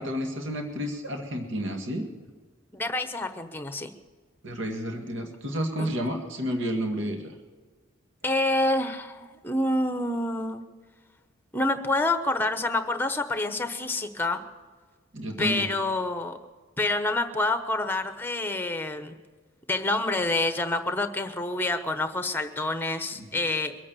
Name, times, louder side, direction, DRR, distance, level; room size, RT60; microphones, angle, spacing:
voice 1, 0.0-2.1 4.4-7.3 15.1-15.7 23.2-23.4, equal, 60° right, 3 dB, 1.9 m, -31 dB
voice 2, 2.7-3.9 5.8-5.9 8.2-10.6 11.5-14.4 15.4-16.4 16.8-19.1 19.7-23.7, left 2 dB, 10° left, 8 dB, 1.0 m, -27 dB
23.0 x 8.6 x 6.9 m, 1.4 s
head